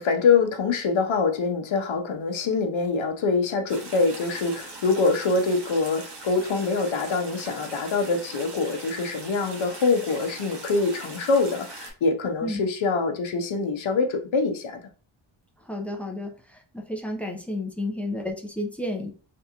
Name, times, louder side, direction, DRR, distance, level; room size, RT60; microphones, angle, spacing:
voice 1, 0.0-14.8, left 4 dB, 70° left, 5 dB, 0.7 m, -24 dB
sound 1, 3.7-11.9, right 3 dB, 55° right, 0.9 m, -41 dB
voice 2, 15.6-19.1, left 1 dB, 5° left, 2 dB, 0.5 m, -32 dB
3.4 x 2.5 x 2.8 m, 0.37 s
wide cardioid pair, 125°, 49 cm